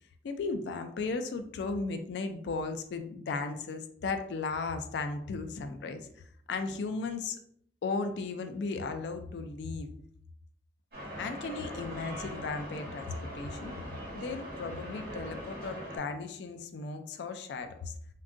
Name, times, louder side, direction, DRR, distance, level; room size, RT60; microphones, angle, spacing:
voice 1, 0.2-6.1 6.5-7.4 7.8-9.9 11.2-13.7 14.1-17.9, left 4 dB, 80° left, 7 dB, 0.3 m, -35 dB
sound 1, 10.9-16.0, equal, 55° right, 0.9 m, -41 dB
3.5 x 2.2 x 2.5 m, 0.65 s
head